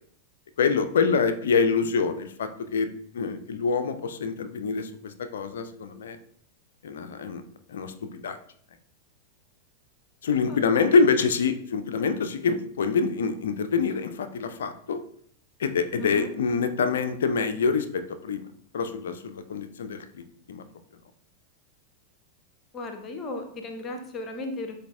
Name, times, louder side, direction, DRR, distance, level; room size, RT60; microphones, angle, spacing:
voice 1, 0.6-2.9 3.1-6.2 6.8-7.4 7.7-8.4 10.2-15.0 15.6-18.4 18.7-20.6, left 5 dB, 60° left, 8 dB, 0.4 m, -26 dB
voice 2, 10.5-11.0 16.0-16.3 22.7-24.8, left 2 dB, 25° left, 5 dB, 0.6 m, -36 dB
7.8 x 2.6 x 2.2 m, 0.63 s
figure-of-eight pair, 90°, 0 cm